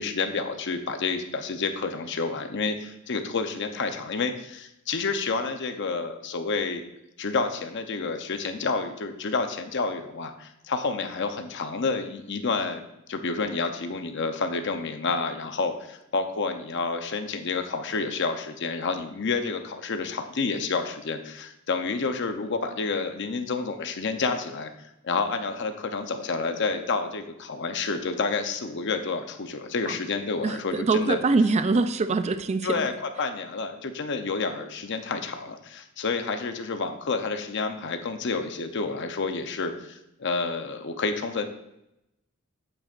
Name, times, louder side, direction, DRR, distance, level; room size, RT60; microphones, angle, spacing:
voice 1, 0.0-6.8 7.2-24.7 25.0-31.2 32.6-32.9 33.2-41.5, left 4 dB, 60° left, 7 dB, 0.7 m, -29 dB
voice 2, 30.4-32.9, right 3 dB, 30° right, 10 dB, 0.4 m, -24 dB
8.8 x 8.0 x 2.5 m, 0.86 s
head